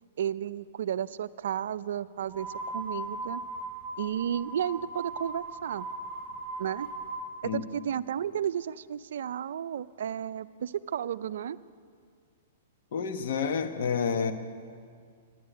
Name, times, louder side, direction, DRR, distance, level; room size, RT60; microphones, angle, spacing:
voice 1, 0.2-3.4 4.0-5.9 6.6-6.9 7.4-11.6, right 9 dB, 75° right, 16 dB, 0.4 m, -33 dB
sound 1, 2.3-7.2, right 2 dB, 20° left, 3.3 m, -38 dB
voice 2, 12.9-14.3, left 6 dB, 65° left, 7 dB, 1.2 m, -29 dB
13.0 x 10.5 x 9.3 m, 2.1 s
hypercardioid pair, 130°, 0 cm